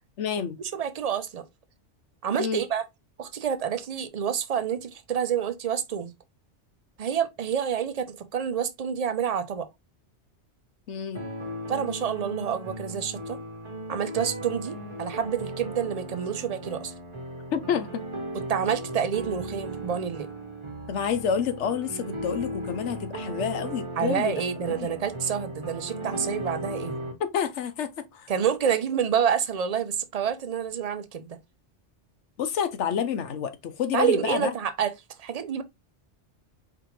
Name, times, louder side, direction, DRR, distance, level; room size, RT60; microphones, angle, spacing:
voice 1, 0.2-0.6 2.4-2.6 10.9-11.3 17.5-18.0 20.9-24.4 24.8-24.9 27.3-28.3 32.4-34.5, left 7 dB, 85° left, 1.1 m, -29 dB
voice 2, 0.7-1.4 2.2-2.8 3.2-6.1 7.0-9.7 11.7-13.4 13.9-16.9 18.5-20.3 24.0-27.0 28.3-31.4 33.9-34.9 35.2-35.6, right 8 dB, 45° right, 0.5 m, -28 dB
sound 1, 11.1-27.1, right 1 dB, 25° right, 1.0 m, -36 dB
4.8 x 3.6 x 3.0 m
omnidirectional pair, 1.2 m